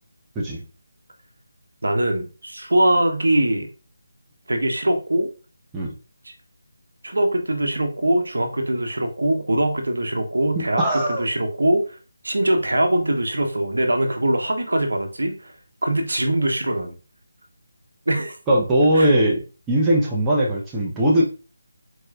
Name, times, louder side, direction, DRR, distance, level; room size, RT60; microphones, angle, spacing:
voice 1, 1.8-3.7 4.5-5.3 6.3-6.4 7.0-12.0 12.2-15.5 15.8-16.9 18.1-18.4 18.9-19.1, right 1 dB, 75° right, 5 dB, 0.8 m, -22 dB
voice 2, 10.6-11.2 18.5-19.4 19.7-21.2, right 1 dB, 10° right, -5 dB, 0.7 m, -19 dB
4.0 x 3.1 x 2.4 m, 0.34 s
figure-of-eight pair, 160°, 0 cm